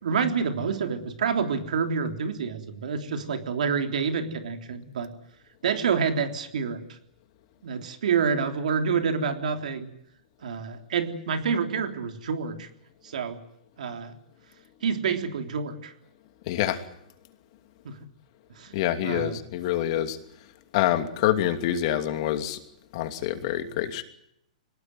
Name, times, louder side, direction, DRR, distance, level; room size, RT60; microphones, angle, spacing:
voice 1, 0.0-5.1 5.6-6.8 7.6-9.9 10.4-12.7 13.0-13.4 13.8-14.1 14.8-15.9 17.8-17.9 18.6-18.7 19.0-19.4, right 6 dB, 75° right, 6 dB, 3.4 m, -28 dB
voice 2, 16.5-16.8 18.7-20.2 20.7-22.6 22.9-24.0, left 12 dB, 50° left, 8 dB, 2.7 m, -26 dB
24.0 x 19.0 x 9.4 m, 0.77 s
hypercardioid pair, 140°, 4 cm